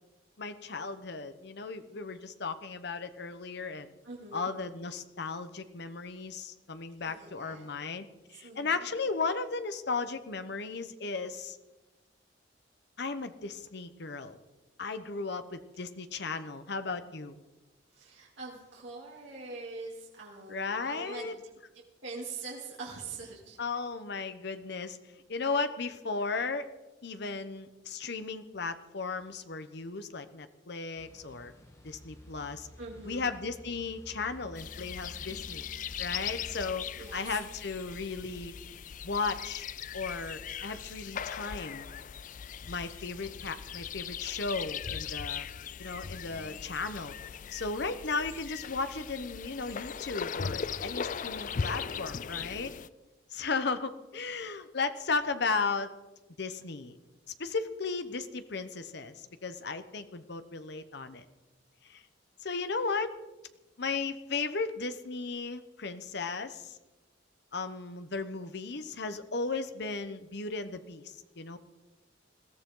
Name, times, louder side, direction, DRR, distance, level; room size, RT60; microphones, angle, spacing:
voice 1, 0.4-3.9 4.3-11.6 13.0-14.4 14.8-17.4 20.5-21.3 23.6-25.0 25.3-26.7 27.0-31.5 31.8-32.7 33.1-35.6 36.0-38.5 39.0-39.7 39.9-41.8 42.7-45.5 45.8-47.1 47.5-52.7 53.3-56.0 56.4-57.0 57.4-61.2 61.8-62.0 62.4-63.2 63.8-66.8 67.5-71.6, left 4 dB, 60° left, 10 dB, 1.0 m, -35 dB
voice 2, 4.0-4.5 7.0-8.1 8.3-8.9 17.9-21.4 22.0-23.6 32.8-33.3 36.9-37.4, right 3 dB, 75° right, -5 dB, 3.2 m, -44 dB
sound 1, 31.0-36.7, left 1 dB, 15° left, 1.6 m, -50 dB
sound 2, 34.5-52.9, left 7 dB, 45° left, 0.4 m, -39 dB
21.0 x 15.0 x 3.9 m, 1.1 s
head